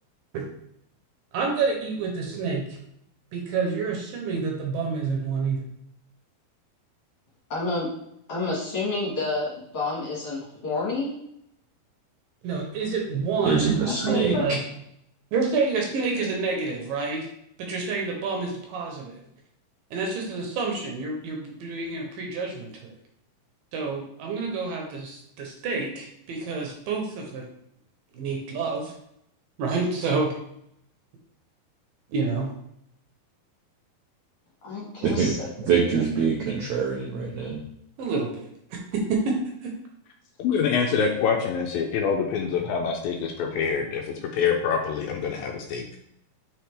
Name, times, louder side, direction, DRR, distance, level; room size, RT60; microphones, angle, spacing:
voice 1, 1.3-2.6 3.3-5.6 12.4-13.7 14.0-14.6 15.3-17.3 17.6-19.2 19.9-22.9 23.7-27.5 28.1-28.9 29.6-30.3 32.1-32.5 38.0-38.4 38.7-39.3 39.6-39.7, right 4 dB, 70° right, 1 dB, 2.4 m, -28 dB
voice 2, 7.5-7.9 8.3-11.1 13.8-14.4 34.6-36.0, left 3 dB, 45° left, -6 dB, 2.3 m, -30 dB
voice 3, 13.4-14.3 35.0-35.3 35.6-37.6, right 6 dB, 90° right, -1 dB, 1.6 m, -24 dB
voice 4, 40.4-45.8, left 6 dB, 80° left, 2 dB, 2.2 m, -25 dB
7.6 x 4.7 x 3.4 m, 0.75 s
omnidirectional pair, 4.5 m